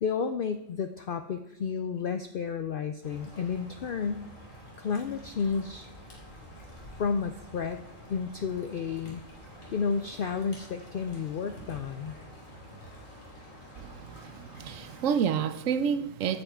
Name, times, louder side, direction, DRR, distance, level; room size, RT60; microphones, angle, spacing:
voice 1, 0.0-4.3 4.8-5.9 7.0-7.8 8.1-9.2 9.7-12.1, left 6 dB, 55° left, 0.6 m, -31 dB
sound 1, 3.0-15.1, equal, 75° left, 3.1 m, -48 dB
voice 2, 13.8-16.4, right 7 dB, 75° right, 1.1 m, -29 dB
9.3 x 5.7 x 8.3 m
omnidirectional pair, 1.4 m